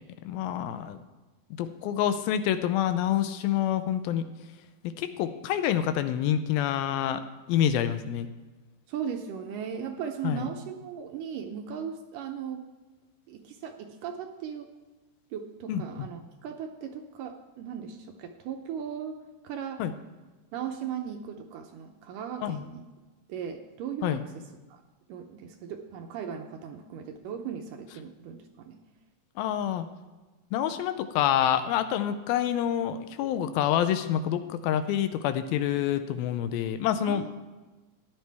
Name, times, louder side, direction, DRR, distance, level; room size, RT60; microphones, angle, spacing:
voice 1, 0.2-1.0 1.5-4.2 5.0-7.2 7.5-8.3 10.2-10.5 15.7-16.1 19.8-19.9 22.4-22.7 24.0-24.2 29.4-29.9 30.5-37.3, left 10 dB, 90° left, 11 dB, 2.5 m, -27 dB
voice 2, 8.9-12.6 13.3-14.7 15.3-19.2 19.4-19.8 20.5-22.8 23.3-24.2 24.7-24.8 25.1-28.8 37.0-37.4, right 8 dB, 75° right, 5 dB, 2.2 m, -37 dB
14.0 x 10.5 x 3.4 m, 1.2 s
omnidirectional pair, 4.2 m